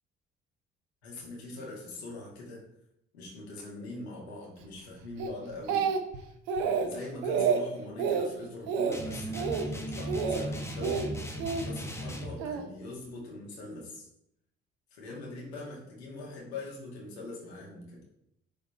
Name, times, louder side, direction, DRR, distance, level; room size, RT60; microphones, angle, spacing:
voice 1, 1.0-2.6 3.1-5.9 6.8-11.3 11.6-14.1 14.9-18.0, left 2 dB, 80° left, -4 dB, 1.8 m, -42 dB
Speech, 5.2-6.2 6.5-6.9 7.2-7.6 8.0-8.3 8.7-9.0 9.3-9.7 10.1-10.4 10.8-11.6 12.4-12.7, right 6 dB, 65° right, 0.8 m, -28 dB
sound 1, 8.9-12.4, right 1 dB, 10° left, 1.3 m, -37 dB
8.3 x 4.1 x 3.2 m, 0.78 s
figure-of-eight pair, 45°, 32 cm